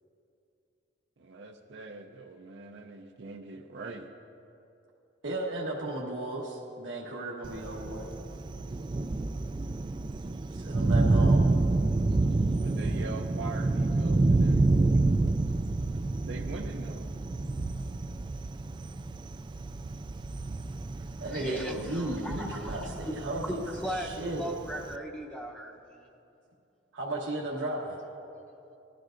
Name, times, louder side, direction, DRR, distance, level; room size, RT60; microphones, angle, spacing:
voice 1, 1.2-4.1 12.6-15.0 16.3-17.1, right 3 dB, 70° right, 2 dB, 0.6 m, -42 dB
voice 2, 5.2-8.1 10.6-11.5 21.2-24.6 26.9-28.0, right 1 dB, 85° right, -4 dB, 1.2 m, -35 dB
Thunder, 7.4-25.0, right 2 dB, 25° right, 0.3 m, -28 dB
voice 3, 21.3-23.1 23.4-26.1, equal, 5° left, -2 dB, 0.8 m, -37 dB
19.5 x 12.5 x 2.6 m, 2.8 s
head